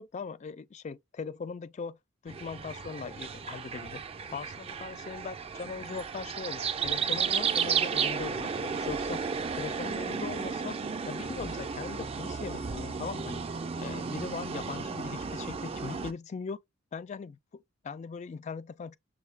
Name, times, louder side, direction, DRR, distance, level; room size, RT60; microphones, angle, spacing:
voice 1, 0.0-2.0 2.2-4.0 4.3-9.2 9.5-10.8 11.1-13.4 13.8-16.6 16.9-18.9, left 5 dB, 35° left, 0.3 m, -40 dB
sound 1, 2.3-16.1, right 6 dB, 30° right, 0.4 m, -33 dB
6.3 x 2.2 x 3.3 m
head